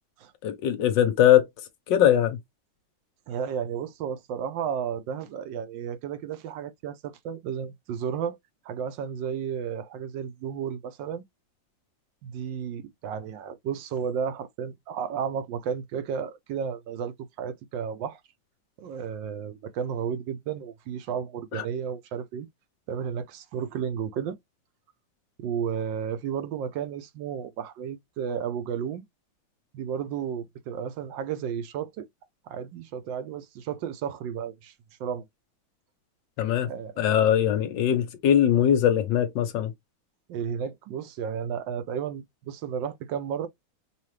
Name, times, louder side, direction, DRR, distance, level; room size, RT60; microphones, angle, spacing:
voice 1, 0.4-1.5 1.9-2.4 21.5-21.6 36.4-36.7 37.0-39.7, left 10 dB, 65° left, 1.4 m, -21 dB
voice 2, 3.3-8.4 8.6-11.2 12.2-18.2 18.8-22.5 22.9-24.4 25.4-29.0 29.7-32.1 32.5-34.7 35.0-35.2 36.7-37.0 40.3-43.5, right 7 dB, 70° right, 1.2 m, -33 dB
5.5 x 2.4 x 3.2 m
omnidirectional pair, 2.3 m